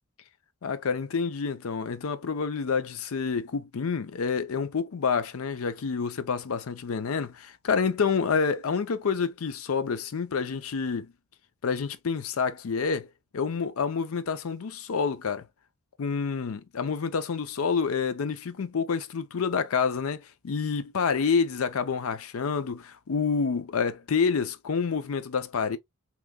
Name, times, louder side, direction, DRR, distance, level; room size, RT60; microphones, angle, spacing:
voice 1, 0.6-11.1 11.6-13.1 13.3-15.4 16.0-25.8, left 5 dB, 80° left, 0.5 m, -28 dB
3.6 x 3.0 x 2.2 m
head